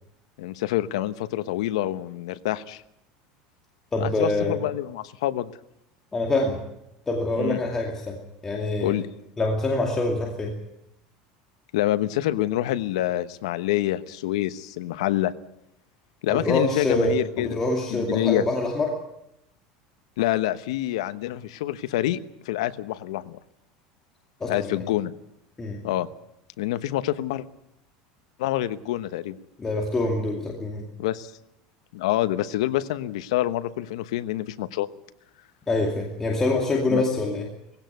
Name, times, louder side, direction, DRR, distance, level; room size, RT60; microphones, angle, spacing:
voice 1, 0.4-2.8 4.0-5.5 7.4-7.6 8.8-9.1 11.7-15.3 16.2-17.6 17.9-18.4 20.2-22.2 22.4-23.4 24.4-25.1 25.8-26.1 26.6-27.4 28.4-29.4 31.0-31.3 31.9-34.9 36.9-37.0, left 14 dB, 90° left, 13 dB, 1.1 m, -26 dB
voice 2, 3.9-4.6 6.1-6.6 7.1-8.2 8.4-8.9 9.4-10.5 16.3-19.0 24.4-24.8 25.6-25.8 29.6-30.8 35.7-37.4, left 2 dB, 15° left, 0 dB, 2.5 m, -25 dB
19.5 x 16.5 x 9.3 m, 0.82 s
supercardioid pair, 155°, 3 cm